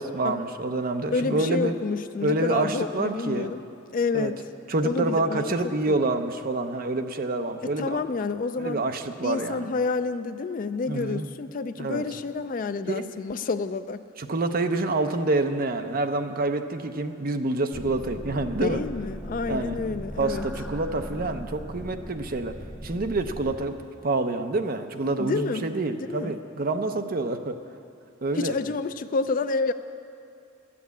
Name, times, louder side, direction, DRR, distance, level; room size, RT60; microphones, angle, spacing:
voice 1, 0.0-1.7 2.2-3.5 4.1-4.3 4.7-8.0 8.6-9.7 10.9-11.3 11.8-12.0 12.9-13.1 14.2-18.8 19.5-19.8 20.2-22.5 22.8-27.6 28.2-28.5, right 2 dB, 45° right, 7 dB, 0.6 m, -27 dB
voice 2, 1.1-3.6 3.9-4.4 4.8-5.5 5.9-6.0 7.6-8.8 9.2-14.0 18.6-20.5 25.2-25.7 26.1-26.3 28.4-29.7, left 4 dB, 40° left, 11 dB, 0.4 m, -29 dB
sound 1, 17.7-23.5, equal, ahead, 0.7 m, -38 dB
12.5 x 8.5 x 8.2 m, 2.5 s
head